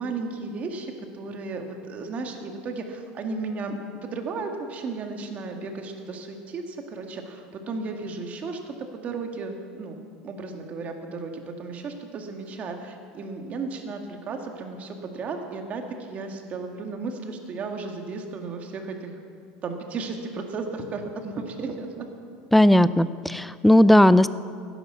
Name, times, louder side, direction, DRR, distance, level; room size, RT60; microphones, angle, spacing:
voice 1, 0.0-19.2 19.6-22.1, right 3 dB, 40° right, 3 dB, 2.0 m, -34 dB
voice 2, 22.5-24.3, left 1 dB, ahead, 16 dB, 0.4 m, -16 dB
16.0 x 10.0 x 6.9 m, 2.2 s
supercardioid pair, 115°, 4 cm